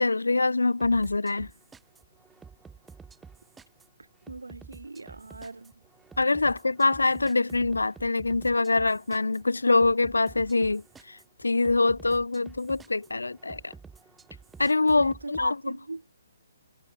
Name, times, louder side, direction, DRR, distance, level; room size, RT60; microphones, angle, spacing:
voice 1, 0.0-1.5 6.2-13.7 14.6-15.8, left 3 dB, 80° left, 0.6 m, -24 dB
sound 1, 0.8-15.5, right 5 dB, 10° right, 0.7 m, -50 dB
voice 2, 4.3-5.7 15.0-16.0, right 3 dB, 80° right, 2.1 m, -40 dB
figure-of-eight pair, 135°, 0 cm